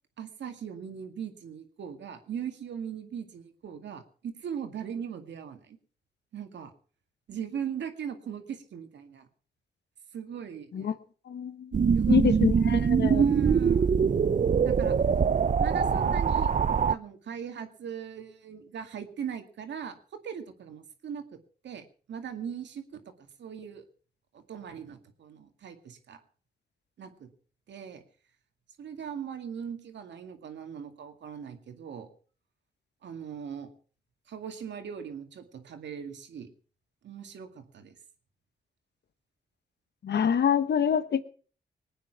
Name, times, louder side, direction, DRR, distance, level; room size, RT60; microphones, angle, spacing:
voice 1, 0.2-5.8 6.3-6.7 7.3-9.3 10.1-10.9 11.9-12.4 13.1-14.0 14.6-14.9 15.6-16.5 16.8-20.0 20.2-21.3 21.6-23.0 23.4-23.8 24.3-26.2 27.0-27.3 27.7-28.0 28.8-32.1 33.0-33.7 34.3-36.5 37.0-37.9, right 8 dB, 80° right, 6 dB, 2.2 m, -39 dB
voice 2, 11.3-11.7 12.1-13.2 40.0-41.2, left 8 dB, 70° left, 13 dB, 1.2 m, -26 dB
sound 1, 11.7-17.0, right 6 dB, 45° right, 0.6 m, -23 dB
20.5 x 9.2 x 6.0 m, 0.42 s
cardioid pair, 50°, 18 cm